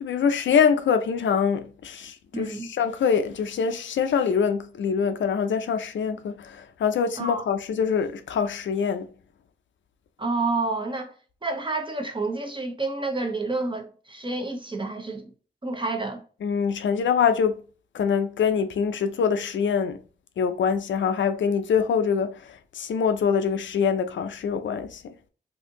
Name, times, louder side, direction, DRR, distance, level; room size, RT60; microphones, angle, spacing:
voice 1, 0.0-9.1 16.4-17.6 17.9-20.0 20.4-25.1, left 6 dB, 85° left, 0.4 m, -24 dB
voice 2, 2.3-2.7 7.2-7.5 10.2-11.1 11.4-15.3 15.6-16.2, right 3 dB, 25° right, 0.9 m, -29 dB
2.7 x 2.6 x 3.6 m
cardioid pair, 50°, 19 cm